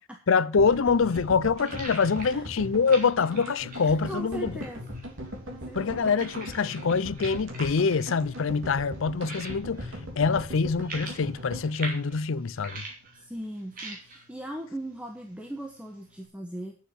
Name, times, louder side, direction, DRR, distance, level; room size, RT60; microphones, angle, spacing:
voice 1, 0.3-4.5 5.7-9.9 10.2-12.8, left 5 dB, 65° left, 0.5 m, -25 dB
sound 1, 0.5-16.3, right 3 dB, 40° right, 2.9 m, -45 dB
sound 2, 0.6-12.8 13.0-13.1 13.3-13.4, equal, 60° right, 3.2 m, -40 dB
voice 2, 4.0-4.8 5.5-6.1 13.1-16.8, right 1 dB, 5° right, 1.1 m, -39 dB
9.1 x 7.3 x 7.2 m
head